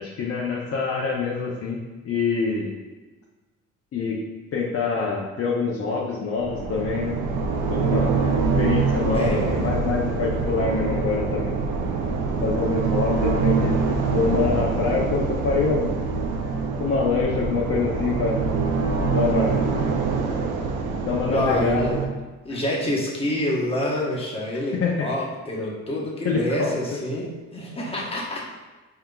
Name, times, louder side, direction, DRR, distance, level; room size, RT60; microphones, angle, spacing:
voice 1, 0.0-1.8 2.0-2.7 3.9-4.2 4.5-7.2 7.7-8.1 8.5-11.6 12.4-13.8 14.1-15.9 16.8-18.4 19.1-19.6 21.0-21.9 22.5-22.6 24.8-25.1 26.2-26.7, left 4 dB, 50° left, -3 dB, 0.6 m, -25 dB
sound 1, 6.4-22.1, right 4 dB, 85° right, 0.6 m, -25 dB
voice 2, 9.1-9.7 21.3-21.9 22.4-28.4, left 1 dB, 20° left, -4 dB, 1.0 m, -27 dB
4.4 x 3.8 x 2.3 m, 1.2 s
cardioid pair, 90°, 30 cm